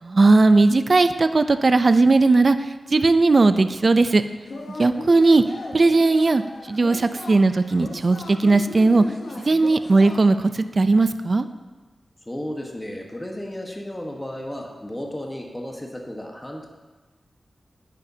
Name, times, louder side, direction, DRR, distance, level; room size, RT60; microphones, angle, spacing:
voice 1, 0.1-4.2 4.7-5.4 5.7-9.0 9.4-11.5, right 3 dB, 50° right, 11 dB, 0.4 m, -18 dB
Yell / Cheering, 4.4-10.6, left 2 dB, 75° left, 1.0 m, -37 dB
voice 2, 12.2-16.7, left 1 dB, 15° left, 0 dB, 1.3 m, -33 dB
10.5 x 9.1 x 2.8 m, 1.3 s
wide cardioid pair, 75°, 0 cm